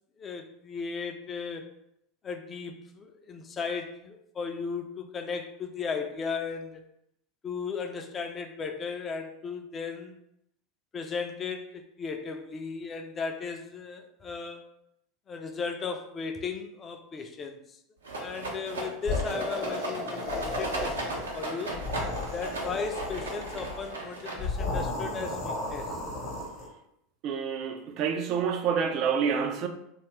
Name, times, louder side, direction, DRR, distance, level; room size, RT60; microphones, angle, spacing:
voice 1, 0.2-1.7 2.2-6.8 7.4-10.2 10.9-14.6 15.3-17.8 18.2-21.8 22.3-25.9, left 5 dB, 30° left, 5 dB, 0.4 m, -36 dB
Rattle, 18.0-24.7, right 2 dB, 85° right, 0.6 m, -36 dB
sound 1, 19.0-21.4 21.7-23.8 24.4-26.7, left 2 dB, 45° left, 0.8 m, -34 dB
voice 2, 27.2-29.7, right 6 dB, 50° right, 6 dB, 0.3 m, -28 dB
2.7 x 2.3 x 3.1 m, 0.77 s
figure-of-eight pair, 80°, 0 cm